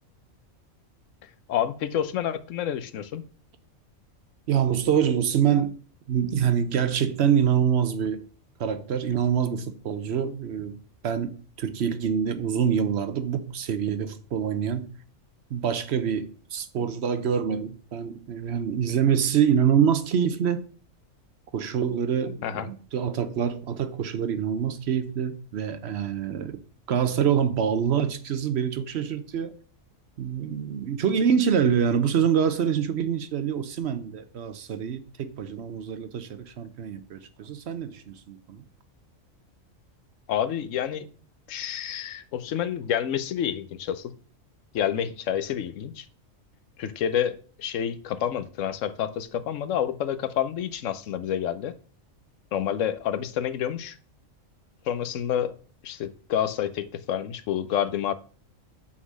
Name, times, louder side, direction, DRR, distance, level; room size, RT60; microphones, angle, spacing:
voice 1, 1.5-3.2 22.4-22.7 40.3-41.1 41.5-44.1 44.7-46.1 46.8-51.7 52.5-53.9 54.9-55.5 55.8-58.1, left 9 dB, 70° left, 1.0 m, -28 dB
voice 2, 4.5-5.8 6.1-8.2 8.6-14.9 15.5-20.7 21.5-26.6 26.9-29.5 30.2-38.6, right 8 dB, 60° right, 0.9 m, -25 dB
6.1 x 3.9 x 6.2 m
omnidirectional pair, 1.4 m